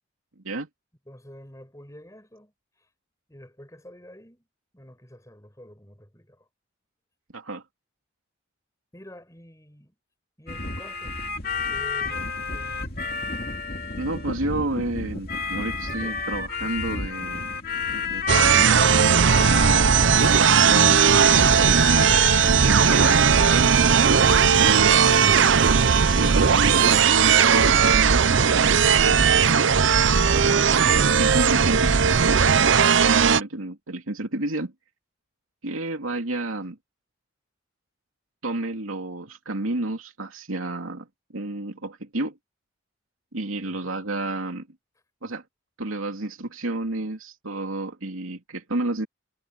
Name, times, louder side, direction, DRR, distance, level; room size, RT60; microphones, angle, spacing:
voice 1, 1.1-2.9 3.3-4.5 4.7-6.5 8.9-9.9 10.4-11.2 11.7-13.0 13.5-13.8 15.9-16.2 43.6-44.0, equal, 15° left, 6.1 m, -48 dB
sound 1, 10.5-23.8, left 4 dB, 45° left, 2.8 m, -31 dB
voice 2, 14.0-17.5 18.0-18.9 19.2-25.1 26.1-29.6 30.1-32.5 33.0-34.7 35.6-36.8 38.4-41.1 41.3-42.4 43.3-44.7 45.2-45.4 45.8-49.1, right 2 dB, 90° right, 2.9 m, -31 dB
sound 2, 18.3-33.4, right 6 dB, 65° right, 0.7 m, -17 dB
head